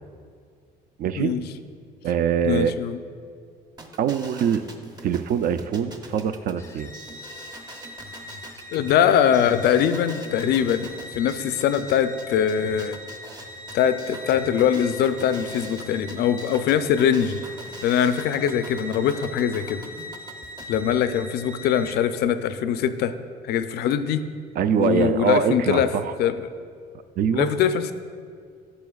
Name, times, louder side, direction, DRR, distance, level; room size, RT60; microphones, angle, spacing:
voice 1, 1.0-1.3 2.0-2.7 4.0-4.6 5.0-6.9 24.6-26.1 27.2-27.5, right 8 dB, 60° right, 11 dB, 0.4 m, -23 dB
voice 2, 2.4-3.0 8.7-13.0 13.7-17.4 17.8-19.8 20.7-23.1 23.4-24.2 24.8-25.9 26.2-26.5 27.3-27.9, left 8 dB, 75° left, 11 dB, 0.5 m, -22 dB
sound 1, 3.8-20.8, right 2 dB, 25° right, 0.7 m, -44 dB
sound 2, 6.6-22.0, left 2 dB, 15° left, 0.5 m, -41 dB
12.0 x 7.1 x 2.3 m, 2.2 s
cardioid pair, 110°, 17 cm